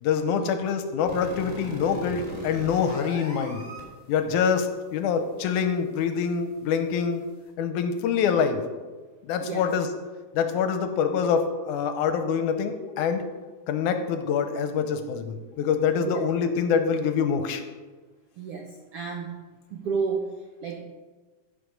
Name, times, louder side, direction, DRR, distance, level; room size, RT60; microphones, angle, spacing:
voice 1, 0.0-3.6 4.1-7.2 7.6-8.6 9.2-9.9 10.3-13.2 13.7-17.6, left 6 dB, 80° left, 8 dB, 2.1 m, -25 dB
sound 1, 1.0-3.8, right 1 dB, 15° right, 3.3 m, -38 dB
voice 2, 9.4-9.7 16.0-16.2 18.4-19.4 19.7-20.8, right 5 dB, 80° right, 1 dB, 1.3 m, -32 dB
14.5 x 5.1 x 5.2 m, 1.3 s
omnidirectional pair, 3.7 m